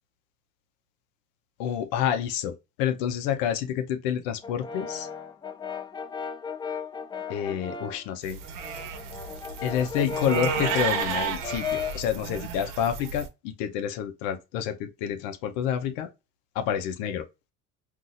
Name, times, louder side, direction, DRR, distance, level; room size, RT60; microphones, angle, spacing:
voice 1, 1.6-5.1 7.3-8.4 9.6-16.1 16.5-17.3, left 9 dB, 85° left, 0.8 m, -28 dB
Brass instrument, 4.4-8.1 8.5-12.1, left 6 dB, 15° left, 0.3 m, -35 dB
sound 1, 8.2-13.3, right 8 dB, 75° right, 0.9 m, -32 dB
4.0 x 2.6 x 2.5 m
supercardioid pair, 100°, 34 cm